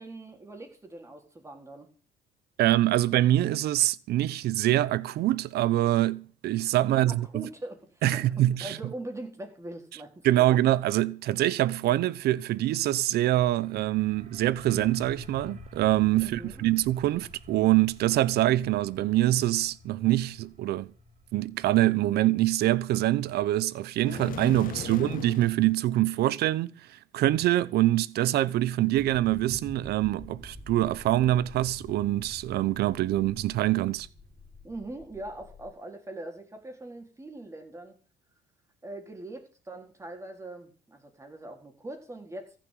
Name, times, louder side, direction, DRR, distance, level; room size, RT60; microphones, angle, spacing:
voice 1, 0.0-1.9 7.1-10.4 16.2-16.7 24.8-24.9 34.6-38.0 38.8-42.5, right 2 dB, 15° right, 4.1 m, -42 dB
voice 2, 2.6-7.5 8.0-8.8 10.2-20.9 21.3-26.7 27.1-34.1, right 15 dB, 70° right, 0.8 m, -25 dB
sound 1, 13.3-24.8, left 1 dB, 45° right, 4.8 m, -50 dB
sound 2, 24.0-25.6, left 11 dB, 55° left, 0.7 m, -38 dB
Metal Board Wobble Stretch Ambience, 29.0-35.7, left 1 dB, 15° left, 4.2 m, -48 dB
15.0 x 7.5 x 9.2 m
cardioid pair, 110°, 17 cm